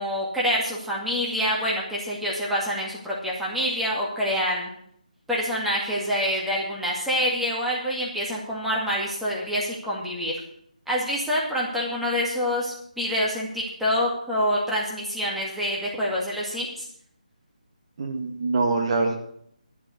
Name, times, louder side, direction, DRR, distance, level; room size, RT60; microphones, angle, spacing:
voice 1, 0.0-4.7 5.3-10.4 10.9-16.9, equal, ahead, -5 dB, 2.1 m, -26 dB
voice 2, 18.0-19.1, right 3 dB, 40° right, 4 dB, 1.8 m, -24 dB
12.5 x 7.1 x 8.2 m, 0.67 s
figure-of-eight pair, 160°, 4 cm